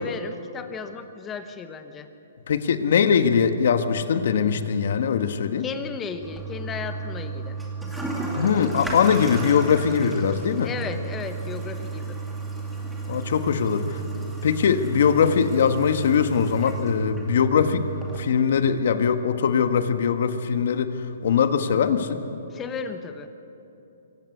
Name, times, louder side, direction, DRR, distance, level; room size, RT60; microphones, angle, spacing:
voice 1, 0.0-2.1 5.6-7.6 10.6-12.2 22.5-23.3, left 5 dB, 15° left, 8 dB, 1.0 m, -34 dB
voice 2, 2.5-5.6 8.3-10.7 13.1-14.0 14.4-17.9 18.2-22.2, left 7 dB, 60° left, 9 dB, 1.5 m, -21 dB
Toilet flush, 6.2-18.2, right 3 dB, ahead, 2.4 m, -32 dB
25.0 x 16.0 x 8.5 m, 2.9 s
hypercardioid pair, 160°, 0 cm